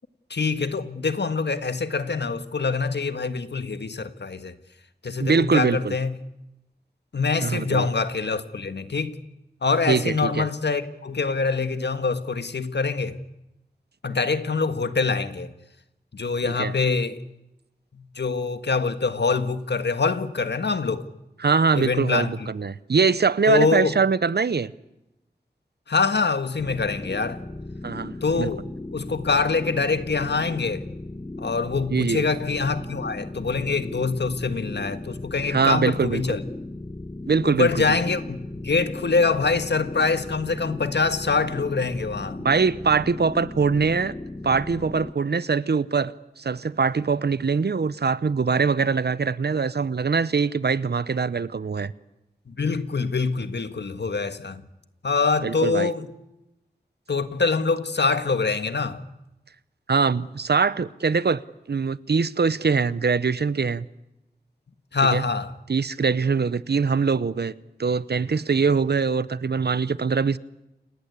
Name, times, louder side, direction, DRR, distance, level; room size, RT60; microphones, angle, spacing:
voice 1, 0.3-4.5 5.0-6.2 7.1-9.2 9.6-13.2 14.0-15.5 16.1-17.2 17.9-21.1 21.7-22.5 23.5-23.9 25.9-27.4 28.2-28.6 28.9-30.8 31.4-36.4 37.4-38.4 38.6-42.4 52.5-54.6 55.0-56.1 57.1-59.0 64.9-65.5, left 4 dB, 75° left, 1.7 m, -24 dB
voice 2, 5.2-5.9 7.4-7.9 9.9-10.5 16.6-16.7 21.4-24.7 27.8-28.5 31.9-32.2 35.5-36.4 37.2-38.0 42.4-44.2 44.4-51.9 55.4-55.9 59.9-61.4 61.7-63.9 65.1-65.2 65.7-67.5 67.8-70.4, right 5 dB, 70° right, 0.9 m, -23 dB
sound 1, 26.6-45.1, left 2 dB, 20° left, 0.8 m, -37 dB
29.5 x 19.0 x 8.4 m
wide cardioid pair, 70°, 18 cm